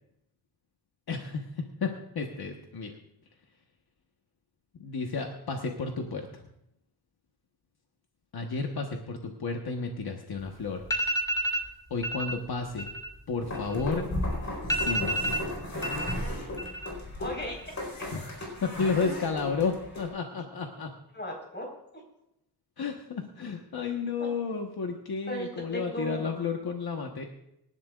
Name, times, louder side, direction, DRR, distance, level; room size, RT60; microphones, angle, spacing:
voice 1, 1.1-2.9 4.8-6.4 8.3-10.9 11.9-12.9 13.3-14.1 14.7-15.6 18.1-18.3 18.6-20.9 22.8-27.3, left 4 dB, 65° left, 2 dB, 1.3 m, -32 dB
sound 1, 10.4-10.5 10.8-11.7 12.0-12.3 12.7-14.1 14.4-14.5 14.7-16.1 16.4-17.0 17.3-17.9, equal, 10° left, 2.1 m, -30 dB
sound 2, 13.4-20.1, left 1 dB, 40° left, 4.5 m, -35 dB
voice 2, 17.2-17.7 21.1-21.7 21.9-22.0 24.2-24.3 25.3-26.3, equal, 25° left, 0 dB, 4.5 m, -36 dB
25.0 x 12.0 x 2.5 m, 0.82 s
wide cardioid pair, 155°, 40 cm